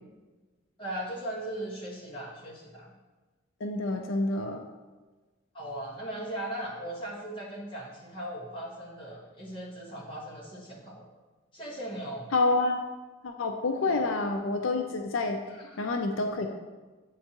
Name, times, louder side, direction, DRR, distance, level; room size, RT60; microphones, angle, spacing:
voice 1, 0.8-2.9 5.5-11.1 11.5-12.3 15.5-15.8, right 1 dB, 25° left, -6 dB, 1.5 m, -38 dB
voice 2, 3.6-4.6 12.3-12.8 13.2-15.4 15.8-16.5, left 3 dB, 85° left, 4 dB, 0.5 m, -28 dB
8.4 x 4.4 x 3.0 m, 1.3 s
head